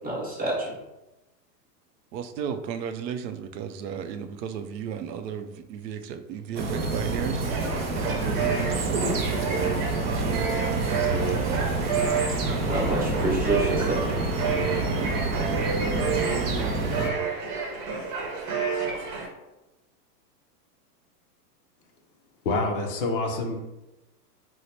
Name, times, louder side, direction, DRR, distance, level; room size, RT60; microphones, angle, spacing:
voice 1, 0.0-0.7 12.7-14.0, right 1 dB, 20° right, -6 dB, 1.1 m, -27 dB
voice 2, 2.1-7.4 8.0-11.6, right 8 dB, 85° right, 8 dB, 0.6 m, -34 dB
sound 1, 6.5-17.1, right 3 dB, 40° right, 0.4 m, -28 dB
sound 2, 7.4-19.3, right 5 dB, 60° right, 0.9 m, -30 dB
sound 3, 10.0-15.1, right 1 dB, 5° left, 0.9 m, -40 dB
voice 3, 22.4-23.6, left 2 dB, 35° left, 2 dB, 0.4 m, -27 dB
3.0 x 2.1 x 4.1 m, 1.0 s
supercardioid pair, 155°, 49 cm